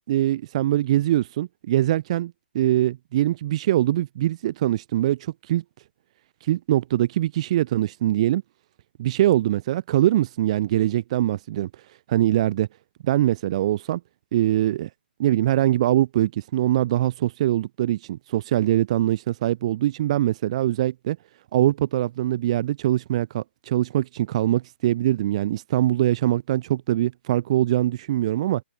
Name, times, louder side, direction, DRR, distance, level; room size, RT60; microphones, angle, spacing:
voice 1, 0.0-5.6 6.4-8.4 9.0-11.7 12.1-12.7 13.0-14.0 14.3-14.9 15.2-21.2 21.5-28.6, right 13 dB, 35° right, 0.5 m, -23 dB
hypercardioid pair, 155°, 6 cm